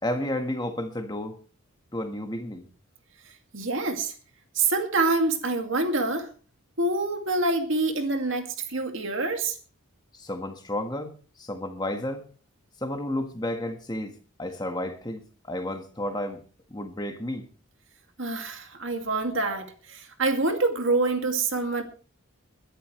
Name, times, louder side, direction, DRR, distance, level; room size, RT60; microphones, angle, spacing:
voice 1, 0.0-1.4 1.9-2.7 10.1-12.3 12.8-16.4 16.7-17.5, left 1 dB, 20° left, 1.5 m, -32 dB
voice 2, 3.5-4.1 4.6-6.3 6.8-9.6 18.2-21.8, right 3 dB, 60° right, 2.3 m, -26 dB
22.0 x 11.0 x 3.2 m
head